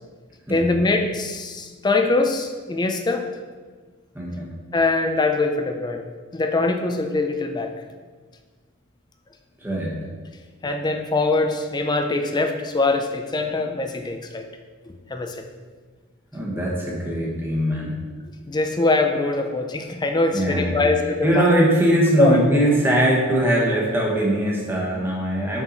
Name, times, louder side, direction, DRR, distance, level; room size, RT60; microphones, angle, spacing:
voice 1, 0.5-3.2 4.7-6.1 6.3-7.7 10.6-14.4 15.1-15.4 18.5-21.5 22.2-22.4, left 2 dB, 20° left, 5 dB, 0.4 m, -22 dB
voice 2, 4.1-4.5 9.6-10.1 16.3-18.0 20.3-25.6, right 1 dB, 10° right, -4 dB, 1.2 m, -21 dB
5.5 x 4.6 x 4.0 m, 1.4 s
head